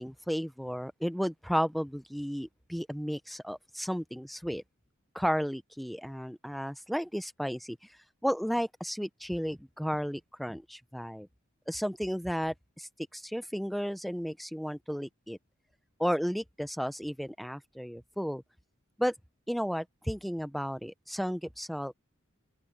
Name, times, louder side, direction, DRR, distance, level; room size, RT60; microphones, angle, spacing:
voice 1, 0.0-4.6 5.1-7.8 8.2-11.3 11.7-15.4 16.0-18.4 19.0-19.1 19.5-21.9, equal, ahead, 0.6 m, -33 dB
open air
head